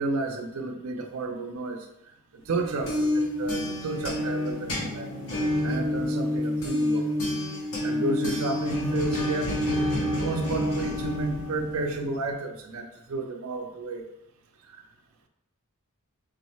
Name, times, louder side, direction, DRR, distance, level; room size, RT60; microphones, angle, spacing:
voice 1, 0.0-1.9 2.5-5.1 5.6-7.1 7.8-9.6 10.0-14.0 14.7-14.8, right 2 dB, 65° right, 4 dB, 0.5 m, -32 dB
sound 1, 2.5-12.2, left 1 dB, 85° left, 1.2 m, -28 dB
3.9 x 3.1 x 3.1 m, 0.84 s
head